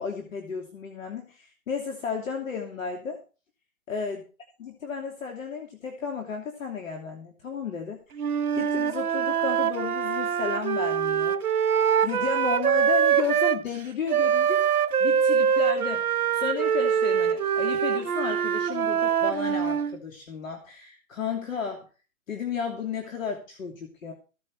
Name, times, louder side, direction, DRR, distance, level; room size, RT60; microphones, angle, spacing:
voice 1, 0.0-3.2 3.9-4.2 4.6-8.0 8.5-11.4 12.0-21.9 22.3-24.1, left 6 dB, 65° left, 3 dB, 2.9 m, -33 dB
Wind instrument woodwind instrument, 8.2-13.6 14.1-20.0, right 8 dB, 80° right, 1.2 m, -24 dB
15.5 x 8.2 x 4.7 m, 0.34 s
hypercardioid pair, 160°, 43 cm